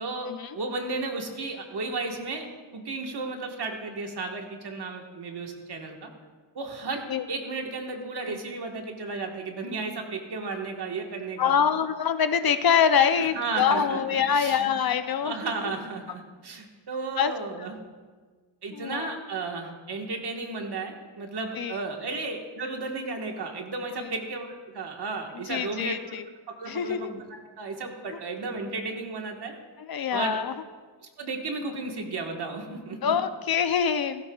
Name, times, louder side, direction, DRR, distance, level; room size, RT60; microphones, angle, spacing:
voice 1, 0.5-2.5 2.7-6.1 6.5-11.5 13.2-14.7 15.2-17.8 18.6-24.5 24.7-25.9 26.6-29.5 30.1-30.4 31.2-33.1, right 3 dB, 60° right, 2 dB, 1.5 m, -34 dB
voice 2, 11.4-15.4 17.2-17.3 18.7-19.2 21.6-21.8 25.5-26.2 26.7-27.1 29.8-30.5 33.0-34.3, left 7 dB, 55° left, 10 dB, 0.5 m, -25 dB
16.0 x 15.5 x 2.3 m, 1.5 s
wide cardioid pair, 165°, 45 cm